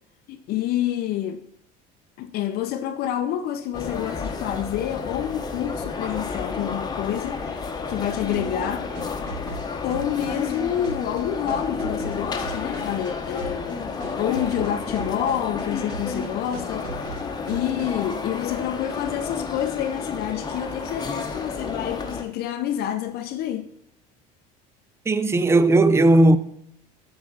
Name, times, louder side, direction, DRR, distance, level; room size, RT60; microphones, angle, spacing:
voice 1, 0.3-1.4 2.2-8.9 9.8-13.9 14.2-23.7, left 11 dB, 55° left, 0.6 m, -28 dB
sound 1, 3.7-22.2, left 4 dB, 20° left, 0.8 m, -31 dB
sound 2, 8.3-10.6 10.8-13.1 13.4-13.7 14.0-15.6 15.9-16.3 16.5-18.1, right 4 dB, 80° right, 1.5 m, -38 dB
voice 2, 25.1-26.4, right 2 dB, 15° right, 0.4 m, -16 dB
7.9 x 3.1 x 6.1 m
supercardioid pair, 110°, 20 cm